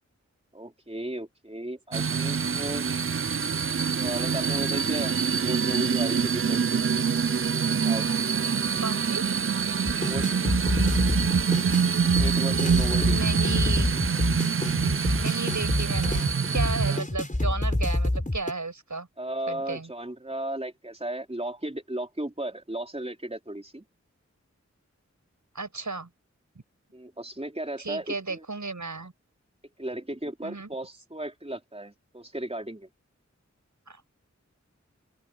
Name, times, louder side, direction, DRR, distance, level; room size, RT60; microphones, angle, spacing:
voice 1, 0.5-2.9 4.0-5.2 5.4-6.8 7.8-8.3 10.0-10.4 12.2-13.2 16.9-17.0 19.2-23.8 26.9-28.4 29.8-32.9, right 1 dB, 20° right, 4.1 m, -35 dB
sound 1, 1.9-17.0, right 6 dB, 45° right, 0.5 m, -25 dB
voice 2, 8.8-9.2 13.0-13.9 15.2-19.1 19.5-19.9 25.5-26.1 27.8-29.1 30.4-30.7 33.9-34.0, right 3 dB, 85° right, 6.7 m, -34 dB
sound 2, 9.9-18.5, left 1 dB, 25° left, 5.6 m, -27 dB
open air
wide cardioid pair, 50°, 29 cm